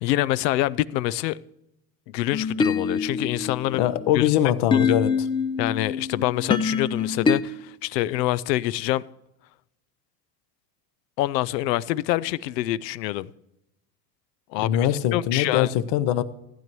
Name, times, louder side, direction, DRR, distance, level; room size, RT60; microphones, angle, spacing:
voice 1, 0.0-1.4 2.1-3.8 4.1-4.3 5.6-9.0 11.2-13.3 14.5-15.7, left 15 dB, 80° left, 0.6 m, -26 dB
sound 1, 2.3-7.4, left 5 dB, 10° left, 0.3 m, -25 dB
voice 2, 3.8-5.1 14.6-16.2, left 11 dB, 55° left, 0.8 m, -22 dB
15.0 x 9.3 x 3.0 m
hypercardioid pair, 85°, 49 cm